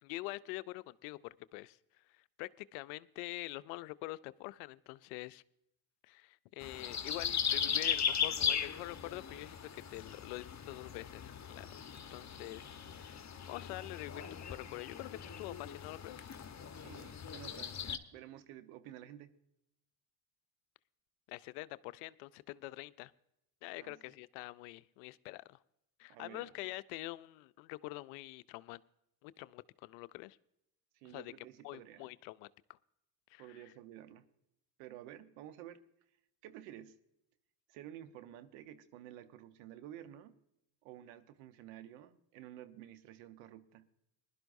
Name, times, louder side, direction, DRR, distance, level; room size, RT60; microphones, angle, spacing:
voice 1, 0.0-5.4 6.0-11.8 12.1-16.3 21.3-23.1 23.6-25.6 26.0-28.8 29.2-30.4 31.0-31.3 31.6-32.8 33.3-33.7, left 20 dB, 80° left, 17 dB, 0.6 m, -46 dB
sound 1, 6.6-18.0, left 7 dB, 35° left, 1.2 m, -38 dB
voice 2, 16.6-17.8 18.1-19.3 23.8-24.1 26.1-26.5 30.9-32.1 33.4-34.3 34.8-35.8 36.4-37.0 37.7-40.4 40.8-43.9, right 12 dB, 80° right, 10 dB, 1.1 m, -52 dB
20.5 x 11.5 x 2.6 m, 0.80 s
hypercardioid pair, 60°, 50 cm